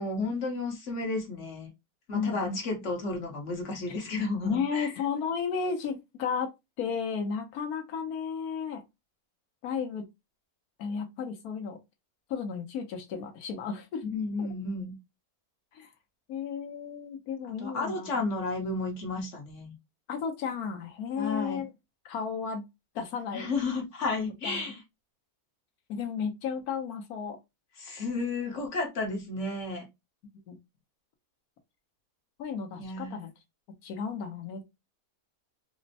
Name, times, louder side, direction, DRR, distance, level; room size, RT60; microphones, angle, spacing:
voice 1, 0.0-1.7 2.1-4.9 14.1-15.0 17.5-19.7 21.2-21.6 23.3-24.8 27.8-29.9 32.8-33.2, left 3 dB, 60° left, 1.3 m, -32 dB
voice 2, 2.1-2.6 3.9-4.0 4.4-6.5 6.8-8.8 9.6-10.0 10.8-11.8 12.3-14.0 14.4-14.5 15.7-15.9 16.3-18.1 20.1-21.7 22.0-22.6 22.9-23.5 24.4-24.6 25.9-27.4 30.5-30.6 32.4-33.3 33.8-34.6, left 6 dB, 80° left, 1.3 m, -33 dB
4.2 x 2.0 x 2.6 m
omnidirectional pair, 1.5 m